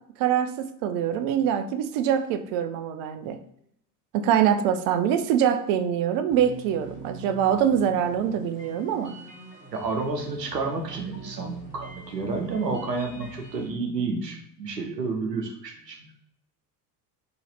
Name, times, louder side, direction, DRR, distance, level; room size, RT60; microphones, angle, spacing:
voice 1, 0.0-3.4 4.1-9.2, right 9 dB, 45° right, 10 dB, 0.5 m, -24 dB
sound 1, 6.3-13.7, right 2 dB, 90° left, 1.2 m, -44 dB
voice 2, 9.7-16.1, right 4 dB, 90° right, 4 dB, 0.8 m, -30 dB
4.0 x 2.9 x 4.0 m, 0.71 s
figure-of-eight pair, 65°, 47 cm